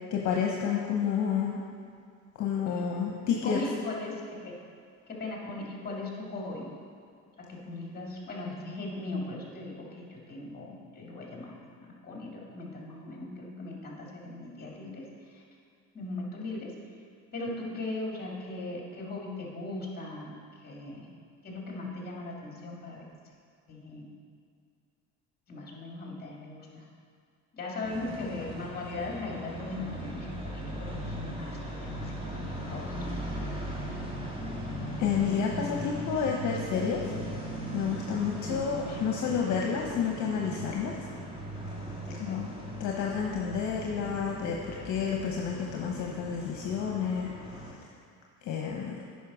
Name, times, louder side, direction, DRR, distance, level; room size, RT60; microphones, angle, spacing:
voice 1, 0.1-1.6 2.4-3.6 35.0-37.0 37.7-41.0 42.2-42.5 42.8-47.3 48.4-49.0, left 7 dB, 55° left, 0 dB, 1.0 m, -30 dB
voice 2, 3.3-4.6 5.1-6.7 7.4-15.1 15.3-15.4 15.9-16.7 17.3-20.3 20.6-21.1 21.4-23.0 23.7-24.1 25.5-26.8 27.5-33.4 38.4-39.0 42.1-42.4, left 2 dB, 25° left, -2 dB, 2.2 m, -39 dB
sound 1, 27.8-47.7, equal, 15° right, 1.8 m, -38 dB
9.2 x 5.6 x 4.9 m, 2.3 s
supercardioid pair, 95°, 35 cm